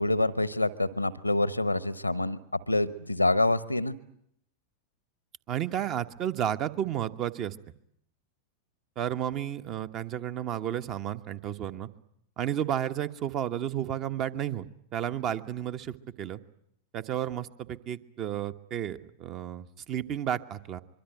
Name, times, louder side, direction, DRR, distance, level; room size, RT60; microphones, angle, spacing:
voice 1, 0.0-2.4 2.7-3.9, left 2 dB, 85° left, 18 dB, 1.0 m, -26 dB
voice 2, 5.5-7.5 9.0-11.9 12.4-14.6 14.9-16.4 16.9-20.8, right 10 dB, 35° right, 11 dB, 1.2 m, -32 dB
24.5 x 23.5 x 9.2 m, 0.72 s
figure-of-eight pair, 90°, 0 cm